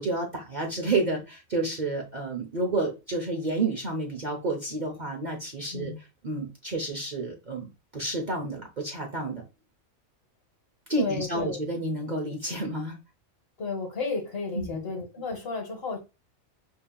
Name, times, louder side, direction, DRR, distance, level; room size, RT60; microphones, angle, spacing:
voice 1, 0.0-5.9 6.2-7.7 7.9-9.4 10.9-13.0 14.5-14.8, right 2 dB, 40° right, 0.7 m, -30 dB
voice 2, 5.7-6.0 11.0-11.6 13.6-16.0, left 4 dB, 50° left, 1.0 m, -33 dB
5.3 x 2.8 x 2.2 m
omnidirectional pair, 1.4 m